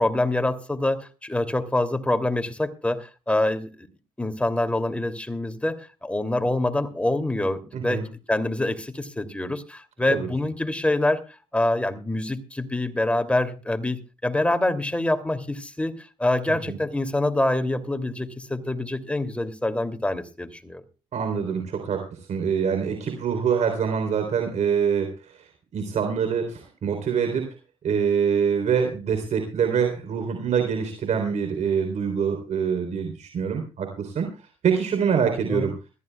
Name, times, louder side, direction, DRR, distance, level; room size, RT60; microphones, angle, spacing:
voice 1, 0.0-3.9 4.2-11.2 11.5-20.8 35.5-35.7, left 1 dB, 10° left, 7 dB, 2.7 m, -26 dB
voice 2, 7.7-8.1 10.1-10.3 16.5-16.8 21.1-22.0 22.3-25.1 25.7-27.5 27.8-34.3 34.6-35.7, right 7 dB, 65° right, 5 dB, 3.6 m, -25 dB
22.0 x 14.5 x 2.3 m, 0.31 s
supercardioid pair, 65°, 13 cm